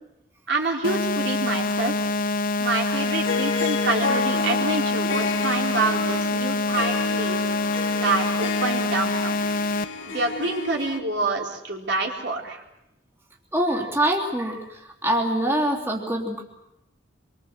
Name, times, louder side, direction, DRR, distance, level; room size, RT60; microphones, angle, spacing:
voice 1, 0.5-2.1 2.6-7.4 7.9-9.4 10.1-12.6, right 3 dB, 60° right, 0 dB, 4.3 m, -27 dB
sound 1, 0.8-9.8, left 2 dB, 45° left, 0.9 m, -25 dB
Harp, 3.0-11.0, left 5 dB, 75° left, 2.3 m, -31 dB
voice 2, 13.5-16.4, right 1 dB, 10° right, -1 dB, 3.2 m, -24 dB
26.0 x 24.0 x 7.9 m, 0.88 s
head